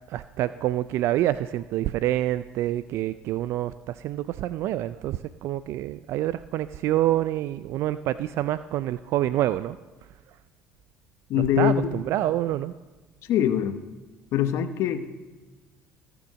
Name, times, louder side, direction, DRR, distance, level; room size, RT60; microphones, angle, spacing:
voice 1, 0.1-9.8 11.6-12.7, right 13 dB, 65° right, 14 dB, 0.3 m, -27 dB
voice 2, 11.3-12.0 13.2-13.8 14.3-15.0, left 10 dB, 65° left, 10 dB, 0.9 m, -23 dB
16.5 x 7.0 x 6.3 m, 1.2 s
supercardioid pair, 85°, 5 cm